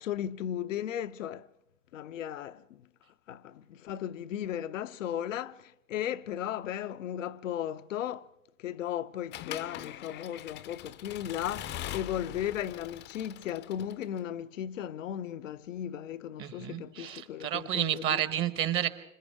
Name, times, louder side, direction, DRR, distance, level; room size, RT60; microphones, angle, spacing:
voice 1, 0.0-1.5 1.9-2.8 3.3-8.3 8.6-18.2, left 10 dB, 65° left, 0.7 m, -36 dB
Accelerating revving vroom / Mechanisms, 9.3-14.2, left 12 dB, 25° left, 0.7 m, -42 dB
voice 2, 16.4-18.9, right 11 dB, 30° right, 1.2 m, -30 dB
29.0 x 26.0 x 3.6 m
hypercardioid pair, 100°, 41 cm